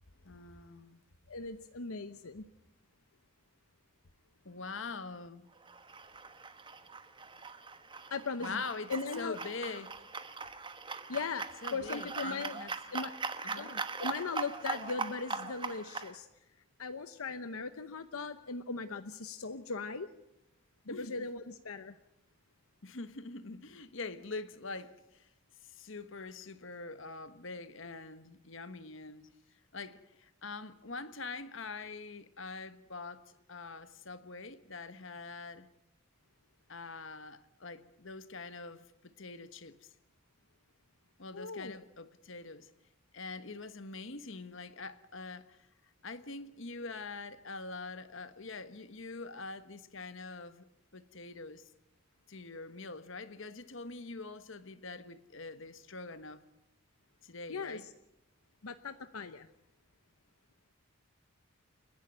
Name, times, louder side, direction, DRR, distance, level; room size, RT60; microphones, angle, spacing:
voice 1, 0.2-1.0 4.4-5.5 8.4-10.0 11.6-12.7 13.4-13.8 20.9-21.3 22.8-25.3 25.7-29.3 29.7-35.7 36.7-39.9 41.2-42.7 43.1-45.6 46.0-50.6 50.9-51.7 52.3-56.5 57.2-57.9, left 3 dB, 65° left, 1.3 m, -44 dB
voice 2, 1.3-2.5 8.1-8.6 8.9-9.4 11.1-12.6 12.9-13.1 13.6-16.3 16.8-20.1 20.9-21.9 41.3-41.8 57.5-57.8 58.6-59.5, left 4 dB, 85° left, 0.9 m, -39 dB
sound 1, 5.6-16.1, right 4 dB, 20° right, 1.1 m, -41 dB
29.5 x 11.5 x 9.1 m
head